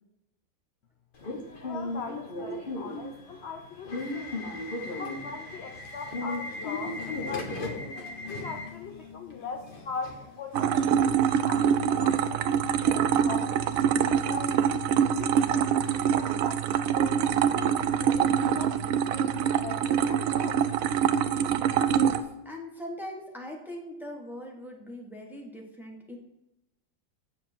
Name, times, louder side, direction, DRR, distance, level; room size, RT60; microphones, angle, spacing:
Subway metro underground / Alarm, 1.2-11.0, left 2 dB, 35° left, 1.1 m, -36 dB
voice 1, 1.6-4.4 4.9-7.8 8.3-10.9 11.5-14.5 15.2-20.6, left 5 dB, 55° left, 4 dB, 0.7 m, -41 dB
sound 1, 10.5-22.2, right 8 dB, 75° right, 0.7 m, -25 dB
voice 2, 21.9-26.2, equal, ahead, 0 dB, 1.2 m, -41 dB
8.0 x 7.2 x 4.5 m, 0.91 s
omnidirectional pair, 2.0 m